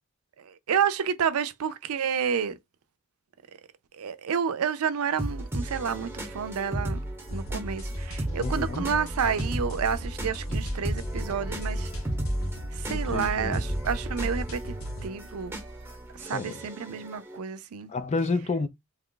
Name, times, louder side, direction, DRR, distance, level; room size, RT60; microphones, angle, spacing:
voice 1, 0.4-2.6 3.9-7.0 7.3-11.9 12.7-14.7 15.0-15.6 16.1-17.9, right 7 dB, 80° right, 0.5 m, -30 dB
sound 1, 5.2-17.4, right 1 dB, 10° right, 0.9 m, -35 dB
sound 2, 7.3-15.1, equal, 65° left, 1.1 m, -34 dB
voice 2, 8.4-8.9 12.9-13.6 16.3-16.6 17.9-18.7, left 3 dB, 30° left, 0.4 m, -30 dB
2.9 x 2.3 x 3.7 m
head